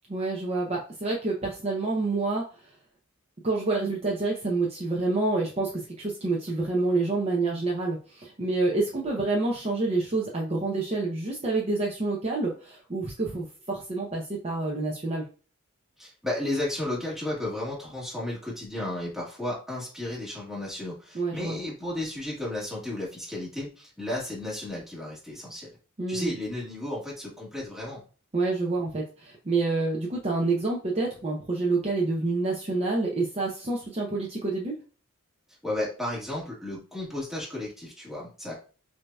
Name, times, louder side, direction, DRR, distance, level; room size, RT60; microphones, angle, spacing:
voice 1, 0.1-2.4 3.4-15.2 21.1-21.6 26.0-26.4 28.3-34.7, right 3 dB, 30° right, -2 dB, 0.7 m, -28 dB
voice 2, 16.0-25.8 26.1-28.0 35.6-38.5, left 1 dB, ahead, -5 dB, 1.7 m, -33 dB
6.3 x 2.8 x 2.3 m, 0.37 s
head